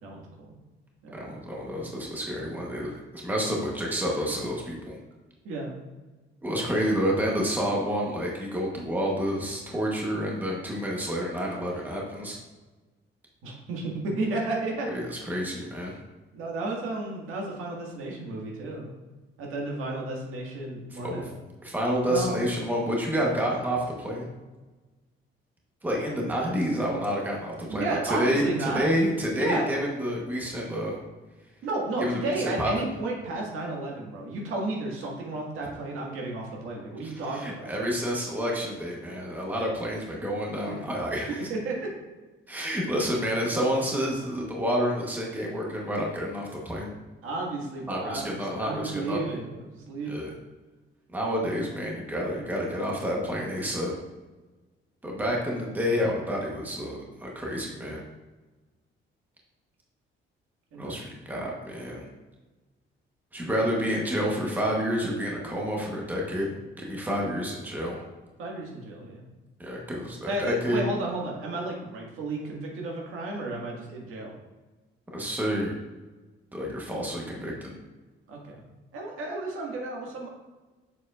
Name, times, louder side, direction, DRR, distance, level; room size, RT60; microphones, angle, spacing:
voice 1, 0.0-0.6 1.0-1.3 5.4-5.7 13.4-14.9 16.3-18.9 19.4-21.4 22.1-22.4 27.7-28.9 29.4-29.7 31.6-37.7 40.7-40.8 41.5-41.9 42.6-42.7 47.2-50.2 60.7-61.0 68.4-69.2 70.3-74.3 78.3-78.6 78.9-80.3, right 2 dB, 90° right, -1 dB, 1.8 m, -32 dB
voice 2, 1.1-5.0 6.4-12.4 14.9-16.0 20.9-21.3 21.6-24.3 25.8-31.0 32.0-32.7 37.0-41.5 42.5-46.9 47.9-49.2 50.0-50.3 51.1-53.9 55.0-58.0 60.8-62.0 63.3-68.0 69.6-70.8 75.1-75.7 76.5-77.7, equal, 10° right, -2 dB, 1.0 m, -29 dB
7.0 x 6.8 x 2.4 m, 1.2 s
cardioid pair, 175°, 21 cm